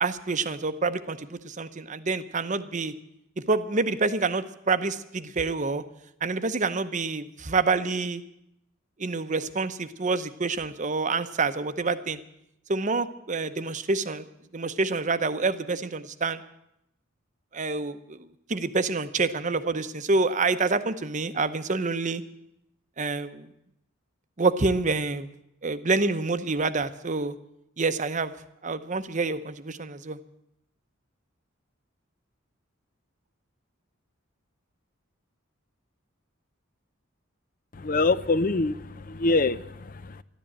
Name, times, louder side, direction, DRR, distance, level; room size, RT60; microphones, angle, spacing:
voice 1, 0.0-2.9 3.5-5.8 6.2-8.2 9.0-12.2 12.7-14.3 14.5-16.4 17.5-18.2 18.5-22.2 23.0-23.5 24.4-25.3 25.6-27.4 27.8-28.3 28.6-30.2, right 3 dB, 35° right, 11 dB, 0.8 m, -27 dB
voice 2, 37.7-40.2, left 3 dB, 40° left, 15 dB, 0.6 m, -25 dB
13.0 x 12.5 x 8.6 m, 0.81 s
head